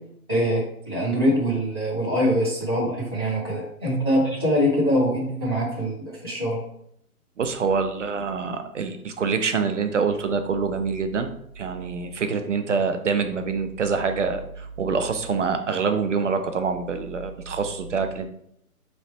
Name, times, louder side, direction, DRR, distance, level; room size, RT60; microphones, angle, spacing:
voice 1, 0.3-6.6, equal, 15° left, -5 dB, 0.5 m, -23 dB
voice 2, 7.4-18.3, right 5 dB, 55° right, 7 dB, 0.6 m, -26 dB
3.7 x 3.2 x 4.1 m, 0.72 s
hypercardioid pair, 155°, 46 cm